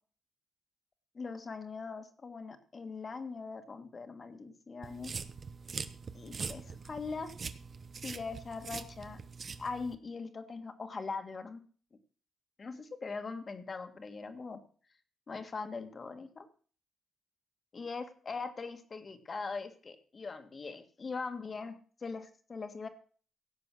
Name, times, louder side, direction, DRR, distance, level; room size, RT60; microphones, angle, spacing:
voice 1, 1.1-5.1 6.1-7.3 8.0-9.2 9.6-11.6 12.6-14.6 15.3-16.5 17.7-22.9, left 4 dB, 35° left, 8 dB, 1.8 m, -41 dB
sound 1, 4.8-9.9, right 5 dB, 40° right, 1.0 m, -43 dB
17.0 x 7.7 x 6.2 m, 0.43 s
cardioid pair, 120°, 0 cm